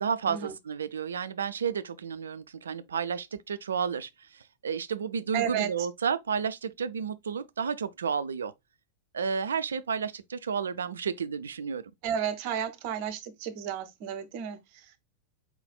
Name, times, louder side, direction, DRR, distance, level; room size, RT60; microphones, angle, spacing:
voice 1, 0.0-8.5 9.1-11.8, right 6 dB, 70° right, 0.4 m, -31 dB
voice 2, 5.3-5.7 12.0-14.9, right 8 dB, 45° right, 0.8 m, -32 dB
4.3 x 4.1 x 2.2 m
figure-of-eight pair, 90°, 0 cm